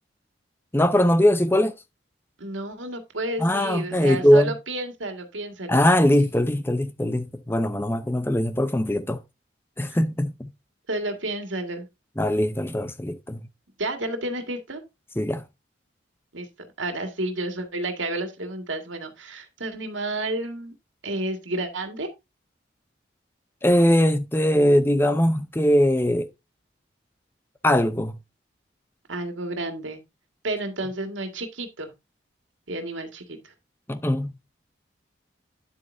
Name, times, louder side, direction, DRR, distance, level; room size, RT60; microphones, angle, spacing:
voice 1, 0.7-1.7 3.4-4.5 5.7-9.2 9.8-10.5 12.2-13.4 15.2-15.4 23.6-26.3 27.6-28.1 33.9-34.4, left 1 dB, 10° left, 0.7 m, -21 dB
voice 2, 2.4-5.8 9.9-10.0 10.9-11.9 13.8-14.8 16.3-16.5 16.8-20.8 21.0-22.1 29.1-30.0 30.4-31.9 32.7-33.5, right 2 dB, 90° right, 1.9 m, -31 dB
9.7 x 7.8 x 2.6 m
head